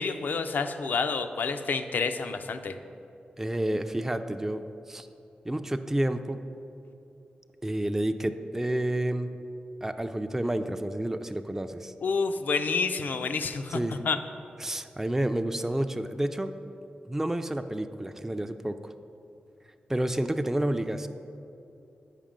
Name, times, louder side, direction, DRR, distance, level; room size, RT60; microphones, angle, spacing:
voice 1, 0.0-2.8 12.0-14.2, left 4 dB, 70° left, 8 dB, 0.4 m, -29 dB
voice 2, 3.4-5.1 5.4-6.4 7.6-9.3 9.8-11.9 13.7-14.0 14.6-16.5 17.0-18.9 19.9-21.1, right 1 dB, 10° right, 8 dB, 0.4 m, -30 dB
7.4 x 5.2 x 5.1 m, 2.8 s
cardioid pair, 45°, 3 cm